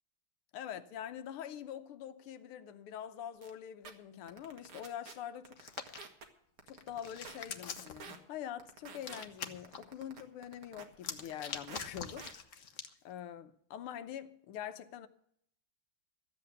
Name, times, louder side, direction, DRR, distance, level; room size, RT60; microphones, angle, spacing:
voice 1, 0.5-5.6 6.7-12.3 13.0-15.1, left 10 dB, 85° left, 1.8 m, -44 dB
sound 1, 3.4-3.5 3.8-3.9 4.3-5.1 5.4-6.2 6.6-7.4 7.8-8.2 8.6-9.2 9.6-10.8 11.2-11.9 12.2-12.3, right 5 dB, 75° right, 2.4 m, -49 dB
Hands, 5.6-6.0 6.7-8.0 9.0-9.8 10.9-12.9, left 6 dB, 50° left, 1.0 m, -44 dB
14.0 x 8.0 x 8.1 m
omnidirectional pair, 2.4 m